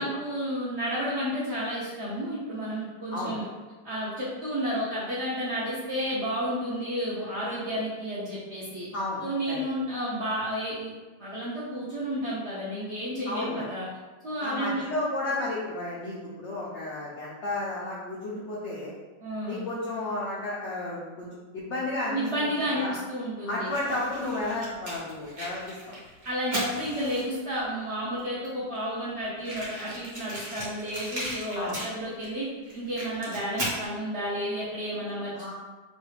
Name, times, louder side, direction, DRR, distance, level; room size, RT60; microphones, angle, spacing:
voice 1, 0.0-3.5 3.8-8.9 9.2-10.9 11.2-13.9 14.2-14.8 19.2-19.6 22.1-23.7 26.2-32.5 32.7-35.5, equal, 60° right, -8 dB, 0.7 m, -31 dB
voice 2, 8.9-9.6 13.3-13.6 14.4-18.9 19.5-21.3 21.5-22.5 22.8-22.9 23.5-25.7 31.5-31.8 35.3-35.5, left 2 dB, 75° left, -6 dB, 0.6 m, -32 dB
Fire, 23.7-27.5 28.2-28.3 28.4-28.5 28.8-28.9 29.4-32.3 32.6-33.9, right 1 dB, 40° right, 1.1 m, -36 dB
3.2 x 2.3 x 3.1 m, 1.2 s
omnidirectional pair, 1.8 m